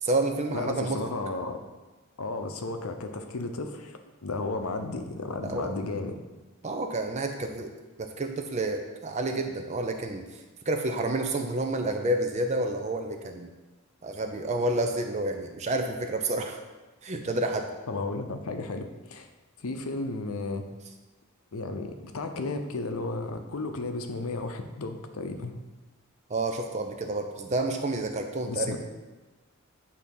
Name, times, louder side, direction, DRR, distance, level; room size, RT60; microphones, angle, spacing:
voice 1, 0.0-1.0 5.4-5.7 6.6-7.7 8.0-10.2 10.7-13.5 14.0-16.6 17.0-17.7 26.3-28.8, right 2 dB, 30° right, 5 dB, 0.4 m, -29 dB
voice 2, 0.5-1.6 2.2-6.2 17.9-19.3 19.6-20.7 21.5-25.6 28.5-28.8, left 3 dB, 80° left, 6 dB, 0.6 m, -33 dB
8.5 x 2.8 x 5.3 m, 1.2 s
head